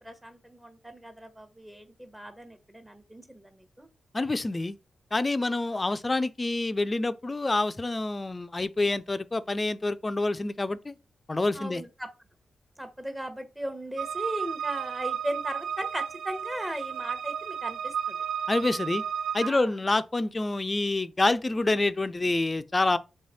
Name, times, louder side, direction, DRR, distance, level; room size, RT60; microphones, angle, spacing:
voice 1, 0.0-3.9 11.5-12.1 12.8-18.2 19.4-19.7, right 1 dB, 10° right, 1.1 m, -37 dB
voice 2, 4.1-4.8 5.1-10.9 11.3-11.8 18.5-19.0 19.3-23.0, left 2 dB, 30° left, 0.4 m, -27 dB
sound 1, 14.0-19.5, right 8 dB, 85° right, 0.3 m, -33 dB
3.4 x 3.1 x 4.2 m
supercardioid pair, 40°, 0 cm